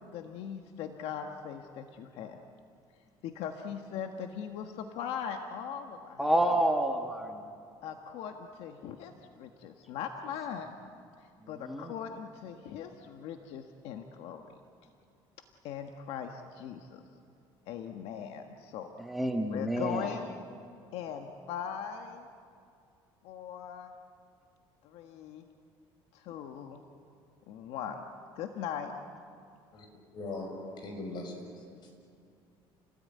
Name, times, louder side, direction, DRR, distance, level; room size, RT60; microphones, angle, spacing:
voice 1, 0.0-2.4 3.2-6.2 7.8-10.8 11.5-14.4 15.6-17.0 17.7-18.9 19.5-20.6 20.9-22.3 23.2-23.9 24.8-25.5 26.1-26.8 27.5-28.1 28.3-28.9, left 8 dB, 75° left, 5 dB, 1.6 m, -40 dB
voice 2, 6.2-7.5 11.6-11.9 19.0-20.1, right 1 dB, ahead, 2 dB, 1.7 m, -29 dB
voice 3, 30.1-31.6, left 2 dB, 45° left, 3 dB, 6.7 m, -40 dB
30.0 x 19.5 x 9.6 m, 2.4 s
cardioid pair, 140°, 10 cm